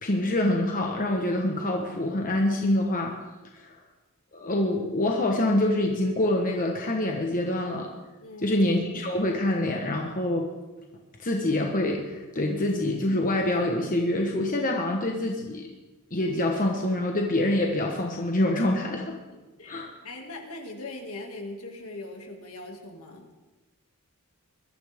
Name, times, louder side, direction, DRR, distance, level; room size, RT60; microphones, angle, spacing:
voice 1, 0.0-3.1 3.6-3.8 4.3-7.9 8.4-10.5 11.2-15.7 16.1-19.2 19.7-19.9, left 1 dB, 40° left, 1 dB, 1.3 m, -26 dB
voice 2, 8.2-8.6 19.3-23.3, left 2 dB, 70° left, 2 dB, 2.4 m, -40 dB
22.0 x 13.0 x 3.7 m, 1.2 s
head